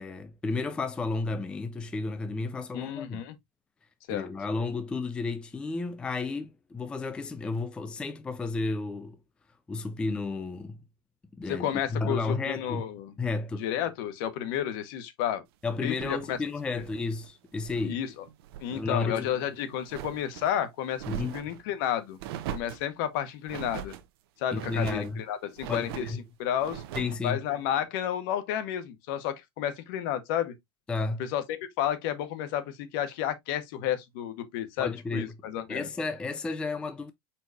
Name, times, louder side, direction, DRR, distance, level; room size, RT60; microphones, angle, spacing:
voice 1, 0.0-3.2 4.1-9.2 9.7-10.8 11.4-12.9 13.2-13.6 15.6-18.0 18.7-19.3 21.1-21.4 24.5-25.2 25.7-26.2 26.9-27.4 30.9-31.2 34.8-37.1, left 3 dB, 10° left, 0.4 m, -32 dB
voice 2, 2.7-3.3 4.1-4.3 11.5-13.1 13.6-15.4 15.8-16.4 17.8-18.1 18.6-21.0 21.3-22.2 22.5-24.0 24.4-26.1 26.4-26.8 27.2-30.5 31.2-35.9, left 10 dB, 60° left, 0.9 m, -31 dB
sound 1, 15.9-17.9 18.3-18.8 19.2-20.5 20.9-21.6 22.2-22.9 23.5-24.0 24.5-25.1 25.6-26.2 26.6-27.2, right 10 dB, 75° right, 0.7 m, -41 dB
4.6 x 4.4 x 2.6 m
supercardioid pair, 165°, 13 cm